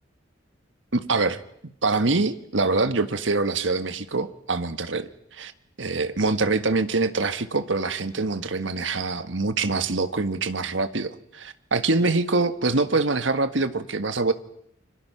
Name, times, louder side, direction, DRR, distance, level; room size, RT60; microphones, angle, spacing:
voice 1, 0.9-1.4 1.8-5.5 5.8-14.3, right 3 dB, 75° right, 10 dB, 1.6 m, -24 dB
29.0 x 26.0 x 5.8 m, 0.71 s
head